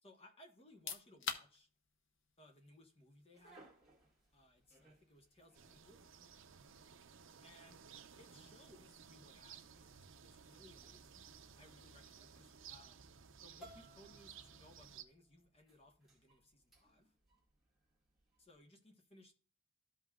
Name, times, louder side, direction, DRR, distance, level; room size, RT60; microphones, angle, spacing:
voice 1, 0.0-1.7 2.4-3.7 4.3-6.1 7.4-7.9 8.2-11.3 11.6-13.0 13.4-17.1 18.4-19.3, left 1 dB, 25° left, 1.2 m, -64 dB
sound 1, 0.6-13.3, left 6 dB, 55° left, 0.8 m, -54 dB
sound 2, 3.3-18.6, right 1 dB, ahead, 1.9 m, -67 dB
sound 3, 5.5-15.0, right 7 dB, 60° right, 0.6 m, -58 dB
13.5 x 5.5 x 2.4 m
head